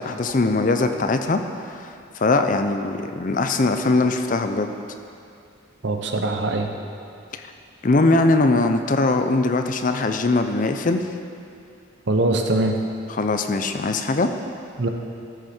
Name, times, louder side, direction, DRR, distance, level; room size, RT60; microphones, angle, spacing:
voice 1, 0.0-1.4 1.7-4.7 7.8-11.0 13.1-14.3, left 2 dB, 40° left, 7 dB, 0.5 m, -21 dB
voice 2, 5.8-6.7 12.1-12.8 14.8-14.9, right 2 dB, 65° right, 4 dB, 0.8 m, -22 dB
13.5 x 6.3 x 4.4 m, 2.4 s
head